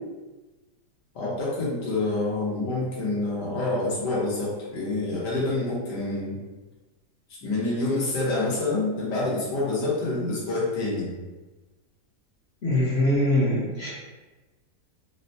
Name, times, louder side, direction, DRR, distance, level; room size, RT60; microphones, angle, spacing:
voice 1, 1.1-6.4 7.4-11.1, left 2 dB, 85° left, -6 dB, 1.6 m, -27 dB
voice 2, 12.6-13.9, left 1 dB, 50° left, -7 dB, 0.8 m, -23 dB
4.3 x 2.2 x 2.7 m, 1.2 s
omnidirectional pair, 1.8 m